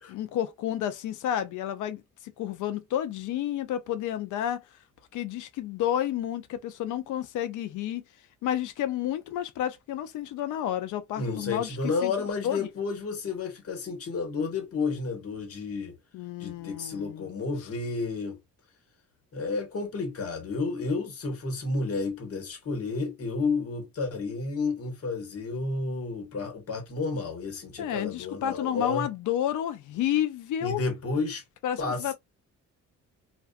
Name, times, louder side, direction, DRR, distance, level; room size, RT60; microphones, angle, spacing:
voice 1, 0.0-4.6 5.1-8.0 8.4-11.8 12.0-12.1 12.4-12.7 16.1-17.3 27.8-30.8 31.6-32.1, left 11 dB, 80° left, 0.6 m, -30 dB
voice 2, 11.2-15.9 16.4-18.4 19.3-29.1 30.6-31.4 31.8-32.1, left 4 dB, 50° left, 1.2 m, -31 dB
2.5 x 2.4 x 2.3 m
cardioid pair, 90°, 30 cm